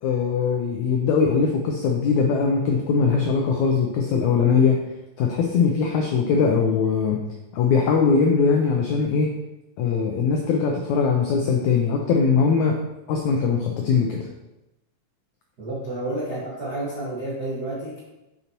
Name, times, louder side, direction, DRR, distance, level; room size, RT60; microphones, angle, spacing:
voice 1, 0.0-4.8 5.2-7.2 7.5-9.3 9.8-12.8 13.1-14.3, left 5 dB, 90° left, 1 dB, 1.6 m, -21 dB
voice 2, 15.6-18.0, right 1 dB, 60° right, -7 dB, 0.9 m, -30 dB
7.3 x 6.8 x 2.9 m, 0.96 s
omnidirectional pair, 4.2 m